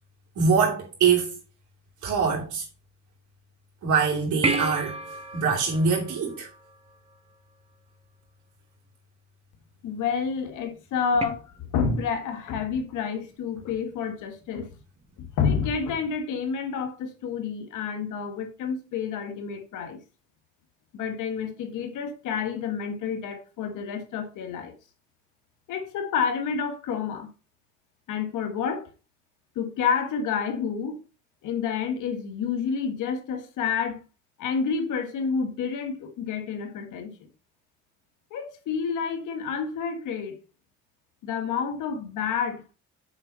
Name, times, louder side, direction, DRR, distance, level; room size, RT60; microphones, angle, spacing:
voice 1, 0.4-1.4 2.0-2.6 3.8-5.0 5.3-6.5, right 5 dB, 75° right, 2.9 m, -23 dB
sound 1, 4.4-7.1 11.2-11.3, right 2 dB, 20° right, 1.3 m, -31 dB
voice 2, 9.8-14.7 15.2-20.0 20.9-24.7 25.7-27.3 28.1-28.9 29.5-31.0 31.4-34.0 34.4-37.1 38.3-40.4 41.2-42.6, left 6 dB, 85° left, 1.6 m, -29 dB
6.8 x 4.5 x 5.4 m
cardioid pair, 90°, 30 cm